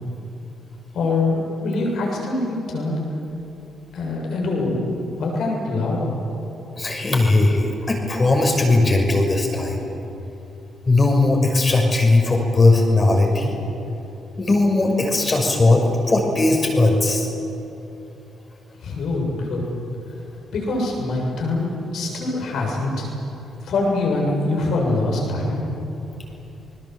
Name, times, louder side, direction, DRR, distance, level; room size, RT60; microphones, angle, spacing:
voice 1, 0.9-3.0 3.9-4.9 5.2-6.2 18.8-19.6 20.5-23.1 23.6-25.6, left 2 dB, 65° left, -1 dB, 7.4 m, -24 dB
voice 2, 6.8-9.9 10.9-13.6 14.4-17.3, left 2 dB, 35° left, 2 dB, 6.1 m, -18 dB
29.5 x 20.5 x 8.2 m, 2.9 s
hypercardioid pair, 45°, 0 cm